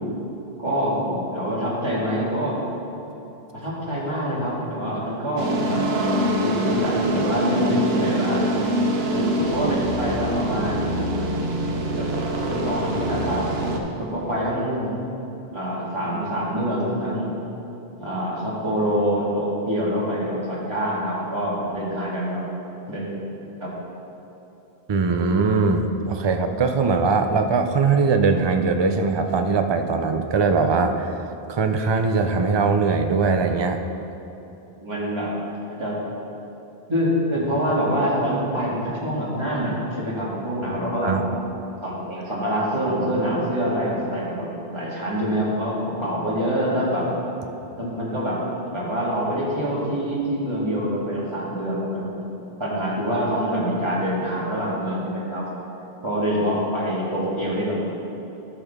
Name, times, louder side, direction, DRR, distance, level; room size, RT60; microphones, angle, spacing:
voice 1, 0.6-2.6 3.5-5.8 6.4-8.5 9.1-11.1 11.9-12.1 12.5-13.5 14.0-14.9 15.5-17.3 18.0-22.4 22.9-23.1 23.6-23.7 34.8-35.3 35.8-36.0 36.9-41.1 41.8-44.5 44.7-47.1 47.8-48.4 48.7-52.1 52.6-55.5 56.0-57.8, equal, 25° right, -7 dB, 1.9 m, -25 dB
sound 1, 5.4-13.8, right 1 dB, 80° right, 1.0 m, -24 dB
voice 2, 24.9-31.2 31.5-33.8 41.0-41.2, right 4 dB, 50° right, 6 dB, 0.3 m, -21 dB
12.0 x 5.9 x 3.5 m, 3.0 s
omnidirectional pair, 1.0 m